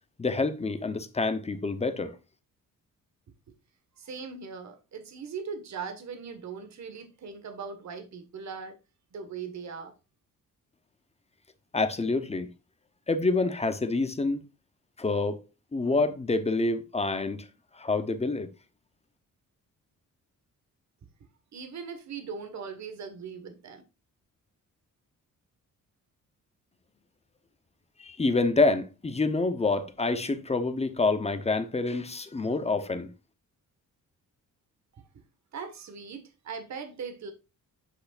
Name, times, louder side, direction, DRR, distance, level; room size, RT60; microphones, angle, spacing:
voice 1, 0.2-2.2 11.7-12.5 13.1-14.4 15.0-15.4 15.7-17.4 17.7-18.5 28.0-33.1, left 3 dB, 20° left, 1.0 m, -27 dB
voice 2, 4.0-8.8 9.1-9.9 21.5-23.8 35.5-37.3, right 5 dB, 55° right, 1.8 m, -39 dB
8.3 x 6.4 x 2.6 m
cardioid pair, 125°, 32 cm